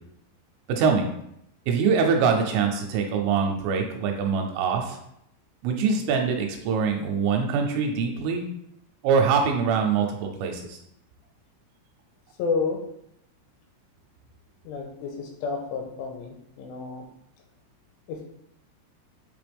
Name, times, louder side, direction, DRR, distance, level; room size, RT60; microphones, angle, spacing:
voice 1, 0.7-1.1 1.7-5.0 5.6-8.4 9.0-10.8, right 5 dB, 80° right, 3 dB, 3.1 m, -24 dB
voice 2, 12.4-12.8 14.6-17.0 18.1-18.2, left 4 dB, 85° left, 2 dB, 3.1 m, -30 dB
8.2 x 3.4 x 3.4 m, 0.77 s
omnidirectional pair, 5.8 m